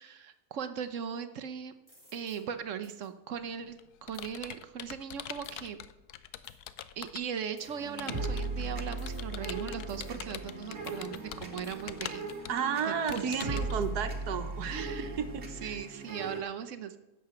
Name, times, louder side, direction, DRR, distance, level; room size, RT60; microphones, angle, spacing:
voice 1, 0.0-1.7 2.1-5.8 7.0-12.3 12.8-13.6 14.7-15.2 15.6-17.0, right 7 dB, 60° right, 10 dB, 1.0 m, -38 dB
sound 1, 1.9-2.4 2.8-3.1 4.1-4.3 5.4-5.7 6.4-6.6 7.6-7.9 9.0-9.4 9.9-10.3 10.8-11.2 11.6-11.8 12.3-12.5 13.1-13.2 13.8-13.9, equal, 20° left, 3.8 m, -60 dB
Computer keyboard, 3.3-7.4 8.0-13.7, left 11 dB, 80° left, 1.1 m, -44 dB
sound 2, 7.6-16.4, right 2 dB, 45° right, 1.7 m, -38 dB
voice 2, 12.5-14.9 15.2-15.8, right 6 dB, 85° right, 9 dB, 1.5 m, -33 dB
10.5 x 6.7 x 7.7 m, 0.97 s
omnidirectional pair, 1.6 m